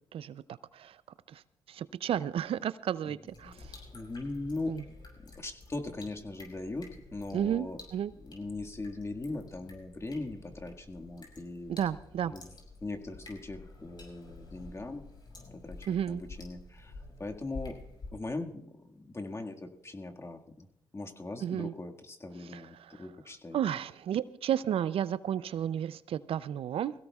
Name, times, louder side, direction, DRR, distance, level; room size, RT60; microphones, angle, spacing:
voice 1, 0.1-0.4 0.7-1.0 1.3-1.4 1.7-3.8 4.7-4.8 7.3-8.1 11.7-12.3 15.9-16.2 21.4-21.7 22.5-23.1 23.5-26.9, right 10 dB, 65° right, 16 dB, 0.5 m, -32 dB
sound 1, 3.3-18.1, left 2 dB, 45° left, 5.6 m, -50 dB
voice 2, 3.9-4.7 5.2-6.9 7.1-7.8 8.2-11.7 12.3-12.5 12.8-15.0 15.5-16.9 17.2-17.8 18.1-20.7 20.9-23.6, left 2 dB, 25° left, 4 dB, 1.8 m, -40 dB
21.5 x 16.5 x 2.4 m, 0.76 s
supercardioid pair, 60°, 10 cm